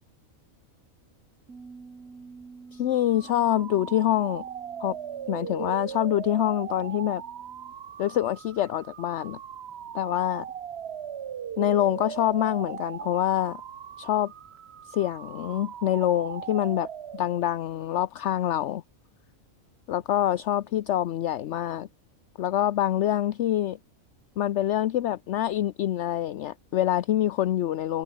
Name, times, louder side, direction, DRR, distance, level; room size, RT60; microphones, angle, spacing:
Bass guitar, 1.5-7.7, right 4 dB, 85° right, 2.9 m, -50 dB
voice 1, 2.7-4.4 4.8-5.0 5.3-7.2 8.0-9.4 9.9-10.5 11.6-13.6 14.0-14.3 14.9-16.9 17.1-18.8 19.9-21.9 22.4-23.8 24.4-28.0, left 12 dB, 65° left, 0.9 m, -25 dB
sound 1, 2.9-17.6, right 9 dB, 55° right, 1.0 m, -39 dB
omnidirectional pair, 1.4 m